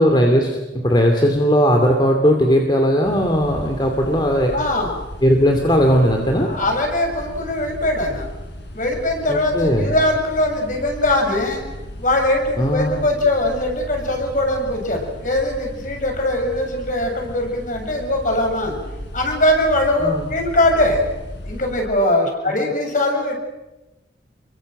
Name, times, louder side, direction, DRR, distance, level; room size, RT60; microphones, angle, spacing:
voice 1, 0.0-4.5 5.2-6.5 9.3-9.9 12.6-13.0 20.0-20.3, equal, 25° left, 3 dB, 2.7 m, -17 dB
sound 1, 3.0-21.9, equal, 75° left, 7.5 m, -36 dB
voice 2, 4.5-4.9 6.4-8.3 8.7-11.6 12.0-18.8 19.1-21.0 21.4-23.4, left 1 dB, 45° left, 2 dB, 7.4 m, -21 dB
29.5 x 23.5 x 7.9 m, 1.0 s
head